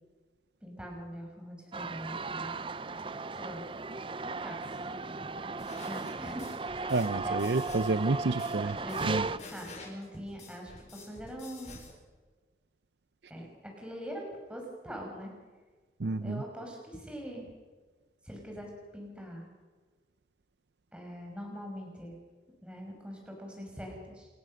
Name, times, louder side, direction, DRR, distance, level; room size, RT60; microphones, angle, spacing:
voice 1, 0.6-2.5 3.3-3.7 4.2-4.6 5.9-6.5 7.2-7.4 8.8-11.7 13.3-13.5 13.8-15.3 16.0-17.5 18.2-19.5 20.9-22.1 22.6-24.3, equal, 5° right, 0 dB, 5.4 m, -43 dB
sound 1, 1.7-9.4, right 3 dB, 30° right, 0.5 m, -36 dB
sound 2, 5.6-11.9, left 2 dB, 40° left, 5.5 m, -50 dB
voice 2, 6.9-8.8 9.0-9.3 16.0-16.4, right 3 dB, 70° right, 11 dB, 0.6 m, -29 dB
29.5 x 15.0 x 6.4 m, 1.4 s
head